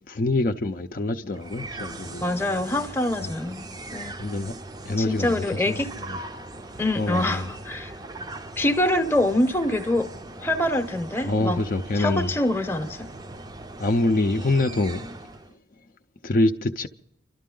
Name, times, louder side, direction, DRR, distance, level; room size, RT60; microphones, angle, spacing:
voice 1, 0.1-2.3 3.2-3.3 4.2-4.5 4.9-6.2 6.9-7.5 11.2-12.3 13.8-15.1 16.2-16.9, left 2 dB, 45° left, 0.5 m, -25 dB
sound 1, 1.3-15.5, right 2 dB, 20° right, 0.5 m, -40 dB
voice 2, 2.2-4.2 5.0-5.9 6.8-8.0 8.6-10.1 10.4-11.6 11.9-13.1, left 1 dB, 10° left, 0.7 m, -25 dB
30.0 x 12.5 x 3.8 m
head